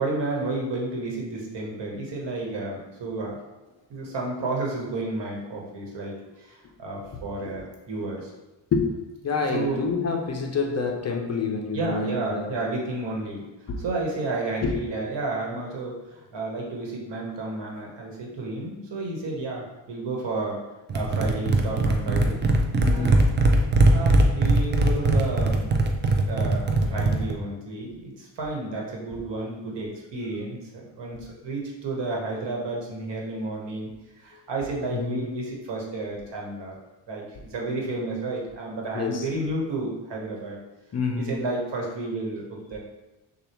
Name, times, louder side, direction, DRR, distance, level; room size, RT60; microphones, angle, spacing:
voice 1, 0.0-3.4 3.9-8.3 9.5-9.9 11.7-13.5 13.8-20.6 20.9-22.4 22.8-23.1 23.9-25.7 26.3-33.9 34.1-36.8 37.1-40.6 41.2-42.8, right 2 dB, 70° right, -1 dB, 1.2 m, -31 dB
voice 2, 9.2-12.5 13.7-13.8 14.6-14.8 22.8-23.3 34.9-35.2 38.9-39.3 40.9-41.4, left 4 dB, 35° left, 3 dB, 0.5 m, -27 dB
sound 1, 20.9-27.3, right 2 dB, 25° right, 0.4 m, -21 dB
6.5 x 2.3 x 3.0 m, 1.1 s
cardioid pair, 135°, 44 cm